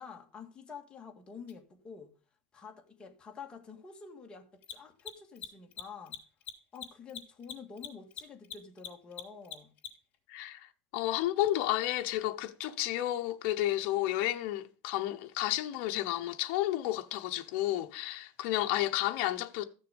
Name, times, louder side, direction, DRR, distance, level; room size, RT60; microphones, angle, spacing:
voice 1, 0.0-2.1 2.5-6.2 6.7-9.7, left 6 dB, 20° left, 2.1 m, -48 dB
Mechanisms, 1.5-1.6 4.5-10.2, left 9 dB, 35° left, 3.4 m, -43 dB
voice 2, 10.3-19.6, left 14 dB, 60° left, 1.0 m, -31 dB
14.0 x 6.7 x 5.3 m
supercardioid pair, 135°, 5 cm